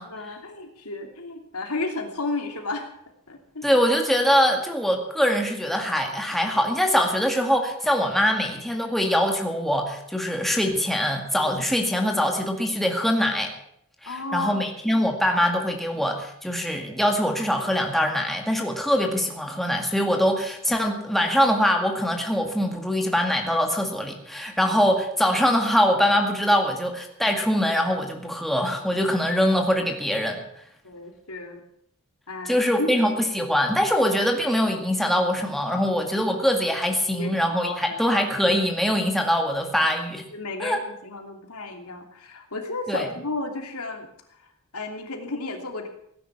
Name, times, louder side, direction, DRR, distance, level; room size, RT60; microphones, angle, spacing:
voice 1, 0.1-2.9 3.3-3.8 14.1-14.7 30.8-31.6 32.3-32.9 37.2-38.0 40.3-45.9, left 3 dB, 90° left, 3 dB, 2.9 m, -33 dB
voice 2, 3.6-13.5 14.0-30.4 32.5-40.2 40.6-40.8 42.9-43.1, equal, ahead, 2 dB, 2.0 m, -23 dB
17.5 x 10.0 x 7.3 m, 0.72 s
head